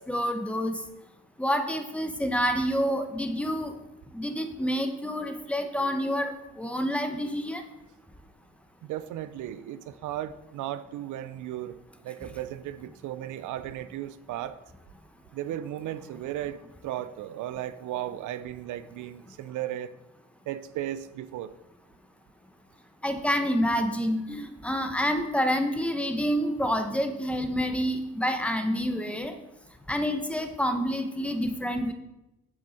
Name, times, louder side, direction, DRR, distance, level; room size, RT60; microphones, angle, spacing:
voice 1, 0.1-0.8 1.4-3.7 4.1-6.3 6.6-7.6 23.0-29.3 29.9-31.9, equal, 5° left, 6 dB, 1.0 m, -28 dB
voice 2, 8.8-11.7 12.0-14.6 15.3-19.9 20.5-21.5, right 12 dB, 80° right, 14 dB, 0.5 m, -35 dB
7.8 x 7.1 x 4.2 m, 0.94 s
cardioid pair, 90°, 30 cm